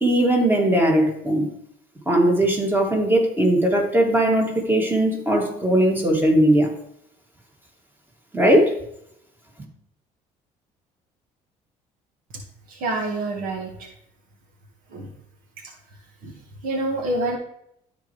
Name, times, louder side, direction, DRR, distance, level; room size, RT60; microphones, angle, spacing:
voice 1, 0.0-1.5 2.1-6.7 8.3-8.7, right 1 dB, 15° right, 0 dB, 2.4 m, -19 dB
voice 2, 12.7-13.9 14.9-15.1 16.2-16.3 16.6-17.4, right 2 dB, 75° right, 3 dB, 1.6 m, -27 dB
12.5 x 4.6 x 3.2 m, 0.73 s
supercardioid pair, 80°, 15 cm